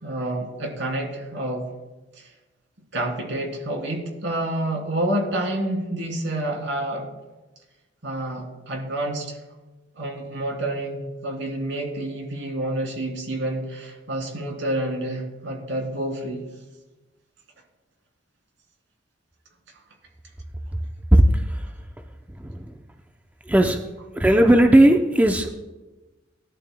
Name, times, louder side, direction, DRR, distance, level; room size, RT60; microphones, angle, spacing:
voice 1, 0.0-1.6 2.2-2.3 2.9-7.1 8.0-9.4 9.9-16.4, right 1 dB, 75° right, 0 dB, 3.1 m, -28 dB
voice 2, 24.1-25.5, right 1 dB, 10° right, 4 dB, 0.6 m, -15 dB
19.0 x 11.5 x 2.2 m, 1.2 s
head